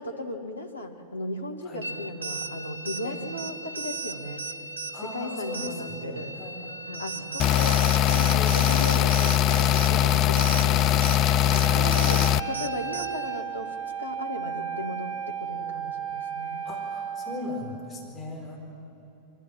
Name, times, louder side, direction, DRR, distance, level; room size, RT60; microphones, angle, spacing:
voice 1, 0.0-4.5 5.0-6.3 6.9-16.7, left 1 dB, 80° left, 4 dB, 1.6 m, -36 dB
sound 1, 1.8-13.4, right 3 dB, 75° right, 0.7 m, -37 dB
voice 2, 4.9-7.3 11.5-12.1 12.4-12.5 16.6-18.6, left 2 dB, 15° left, -2 dB, 4.4 m, -38 dB
sound 2, 7.4-12.4, left 10 dB, 35° left, 0.4 m, -21 dB
Wind instrument woodwind instrument, 11.4-17.4, right 8 dB, 25° right, 2.8 m, -34 dB
24.5 x 14.5 x 7.4 m, 2.7 s
figure-of-eight pair, 90°, 0 cm